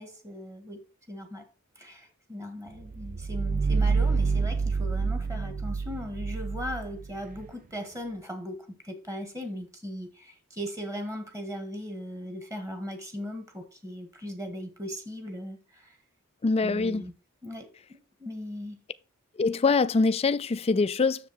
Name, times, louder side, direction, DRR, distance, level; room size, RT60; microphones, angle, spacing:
voice 1, 0.0-1.5 1.8-16.0 16.6-17.1 17.4-18.8, equal, 15° right, 1.8 m, -38 dB
sound 1, 2.8-7.5, right 4 dB, 40° right, 0.4 m, -28 dB
voice 2, 16.4-17.0 19.4-21.3, left 4 dB, 30° left, 0.4 m, -24 dB
7.2 x 6.8 x 4.3 m
head